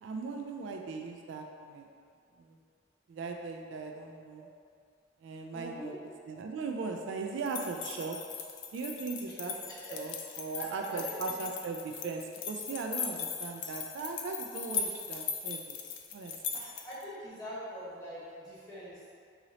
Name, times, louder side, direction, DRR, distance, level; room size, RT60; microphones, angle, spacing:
voice 1, 0.0-1.9 2.4-2.6 3.1-4.5 5.2-5.9 6.3-8.2 8.7-9.5 9.9-10.1 10.4-15.8 16.1-16.3, right 4 dB, 75° right, 3 dB, 0.3 m, -38 dB
voice 2, 5.5-5.9 9.7-11.4 16.5-19.1, equal, 20° left, -10 dB, 1.3 m, -43 dB
sound 1, 7.5-17.0, left 6 dB, 70° left, 0.4 m, -39 dB
3.9 x 3.0 x 2.8 m, 2.2 s
head